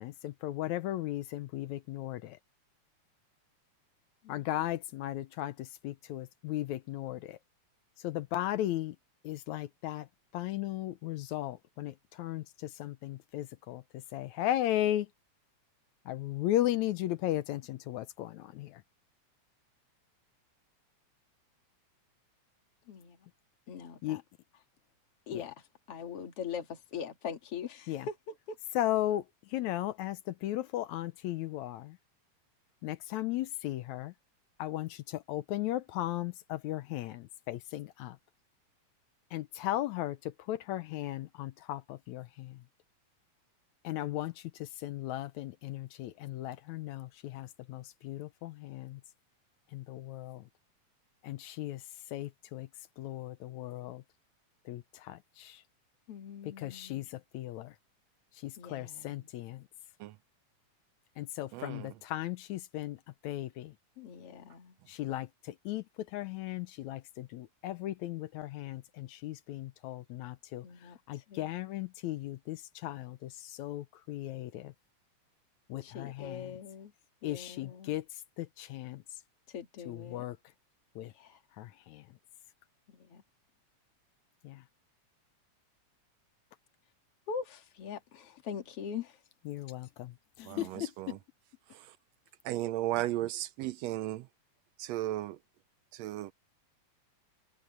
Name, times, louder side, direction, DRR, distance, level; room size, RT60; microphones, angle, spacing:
voice 1, 0.0-2.4 4.3-7.4 8.0-9.0 9.2-10.1 10.3-13.8 14.1-15.1 16.1-18.8 24.0-24.2 25.3-25.5 27.9-28.1 28.8-29.2 29.5-32.0 32.8-34.1 34.6-38.2 39.3-40.2 40.5-42.6 43.8-49.0 49.7-50.4 51.2-51.8 52.1-52.7 53.0-54.0 54.7-55.6 56.4-57.7 58.4-59.6 61.2-63.0 63.2-63.7 64.9-65.8 66.1-70.6 71.1-74.7 75.7-76.6 77.2-78.0 78.4-79.0 79.9-80.4 81.0-81.1 81.6-82.0 84.4-84.6 89.5-90.1 90.6-90.7 91.1-91.2, left 14 dB, 75° left, 2.0 m, -36 dB
voice 2, 22.9-23.2 23.7-24.2 25.3-25.5 25.9-28.6 56.1-57.1 58.6-59.3 64.0-64.7 70.6-71.0 71.3-71.5 75.8-76.9 77.2-77.9 79.5-80.2 81.2-81.4 82.9-83.2 87.3-89.2 90.4-90.8, left 6 dB, 50° left, 3.0 m, -42 dB
voice 3, 61.5-61.9 90.5-91.2 91.7-91.9 92.5-94.3 94.8-95.4 95.9-96.3, right 15 dB, 80° right, 1.5 m, -35 dB
omnidirectional pair, 3.5 m